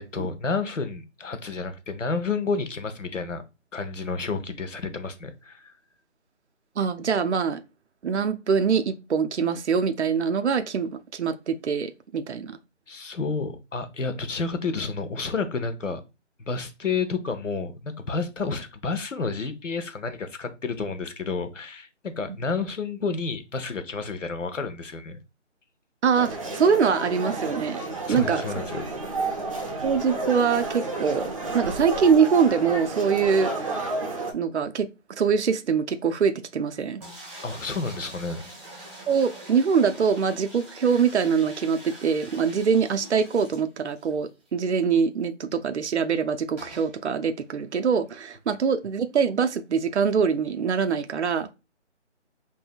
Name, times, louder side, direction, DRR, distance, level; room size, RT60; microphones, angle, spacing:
voice 1, 0.0-3.4 3.7-5.7 12.9-16.0 16.4-25.2 28.1-28.9 29.2-29.4 37.4-38.4, left 4 dB, 80° left, 0.9 m, -30 dB
voice 2, 6.8-7.6 8.0-12.6 26.0-27.8 28.1-28.4 29.8-31.3 31.5-33.9 34.3-37.0 39.1-51.5, right 6 dB, 65° right, 0.6 m, -24 dB
sound 1, 26.1-34.3, right 3 dB, 30° right, 0.7 m, -31 dB
sound 2, 37.0-44.2 44.5-44.6 44.8-44.9 46.6-46.9, right 1 dB, 10° right, 1.0 m, -44 dB
5.5 x 2.7 x 2.3 m
figure-of-eight pair, 165°, 37 cm